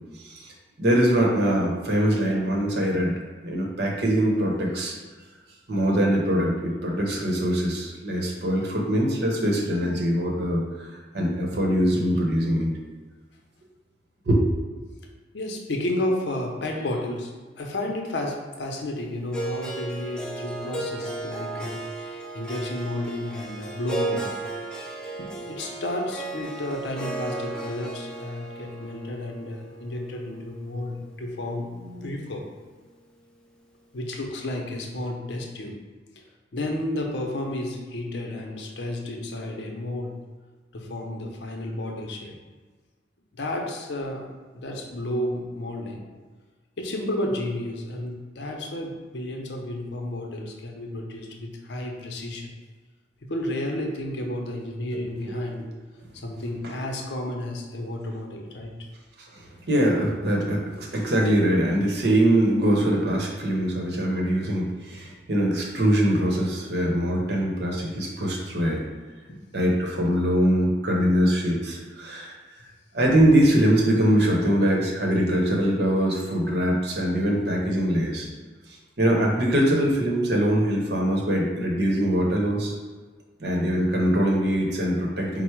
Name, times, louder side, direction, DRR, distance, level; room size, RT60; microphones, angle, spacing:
voice 1, 0.1-4.9 5.7-12.7 14.3-14.4 55.2-55.7 56.6-56.8 59.3-68.8 69.5-72.3 72.9-78.3 78.7-82.7 83.4-85.4, right 1 dB, 60° right, -1 dB, 0.8 m, -23 dB
voice 2, 15.3-24.5 24.7-32.5 33.9-35.7 36.2-36.3 36.5-40.1 40.7-42.3 43.3-44.3 44.5-46.1 46.8-52.5 53.3-55.6 56.2-58.7 69.3-69.4, left 1 dB, 70° left, 1 dB, 0.6 m, -32 dB
Harp, 19.3-31.5, right 2 dB, 5° left, 0.3 m, -35 dB
4.5 x 2.0 x 4.5 m, 1.4 s
head